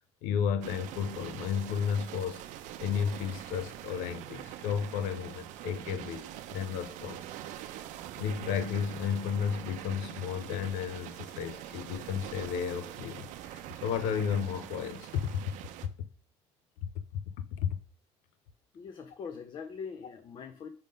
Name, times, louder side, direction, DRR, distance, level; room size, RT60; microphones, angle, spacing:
voice 1, 0.2-2.4 2.8-7.2 8.2-15.4 17.4-17.8, left 7 dB, 90° left, 0.6 m, -33 dB
sound 1, 0.6-15.9, right 12 dB, 80° right, 0.6 m, -44 dB
voice 2, 18.7-20.7, left 6 dB, 40° left, 0.5 m, -42 dB
5.2 x 3.7 x 5.2 m
cardioid pair, 120°, 13 cm